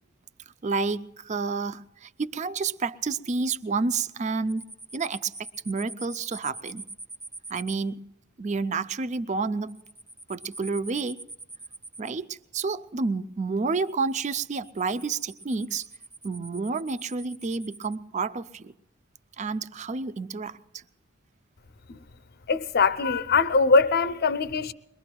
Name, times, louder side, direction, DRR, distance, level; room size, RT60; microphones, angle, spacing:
voice 1, 0.6-5.3 5.7-6.8 7.5-8.1 8.4-9.7 10.3-11.2 12.0-15.9 16.2-18.7 19.4-20.8, right 4 dB, 35° right, 0.4 m, -30 dB
sound 1, 4.5-7.7 9.7-12.2 13.8-18.0, right 2 dB, 10° right, 1.2 m, -43 dB
voice 2, 22.5-24.7, left 4 dB, 50° left, 0.6 m, -22 dB
22.5 x 21.5 x 2.3 m
head